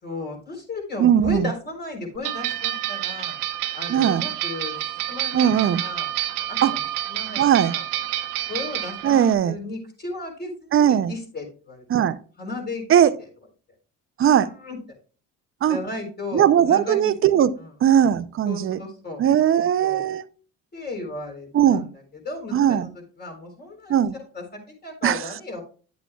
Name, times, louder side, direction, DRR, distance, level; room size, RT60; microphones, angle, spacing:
voice 1, 0.0-3.4 3.7-4.8 5.1-6.1 6.4-7.8 8.5-12.1 12.4-12.8 14.2-14.8 15.7-17.1 17.6-17.7 18.5-19.2 19.5-20.1 20.7-22.9 23.2-25.6, left 2 dB, 30° left, 3.9 m, -35 dB
voice 2, 1.0-1.5 3.9-4.3 5.3-5.8 6.6-6.7 7.4-7.7 9.0-9.6 10.7-11.1 11.9-12.2 12.9-13.1 14.2-14.5 15.6-15.8 16.3-17.5 17.8-18.8 19.2-20.2 21.5-21.9 22.5-22.9 23.9-24.2 25.0-25.2, right 9 dB, 45° right, 0.5 m, -19 dB
sound 1, 2.2-9.3, right 14 dB, 90° right, 1.0 m, -29 dB
10.5 x 8.2 x 2.3 m
cardioid pair, 100°, 32 cm